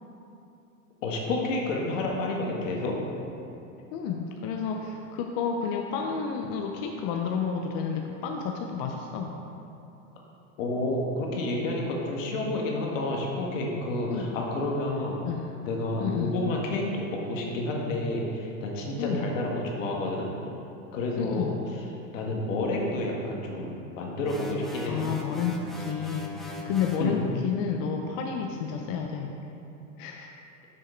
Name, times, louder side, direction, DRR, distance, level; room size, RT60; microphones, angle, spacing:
voice 1, 1.0-3.0 10.6-15.2 15.6-20.3 20.9-21.5 22.1-25.0 27.0-27.2, left 2 dB, 80° left, -1 dB, 1.6 m, -30 dB
voice 2, 3.9-9.3 14.1-14.4 15.2-15.4 16.0-16.4 19.0-19.2 21.2-21.6 24.9-29.4 30.0-30.3, left 6 dB, 50° left, 2 dB, 0.7 m, -31 dB
sound 1, 24.2-27.1, left 1 dB, ahead, 0.5 m, -39 dB
6.4 x 6.4 x 4.4 m, 2.7 s
supercardioid pair, 115°, 38 cm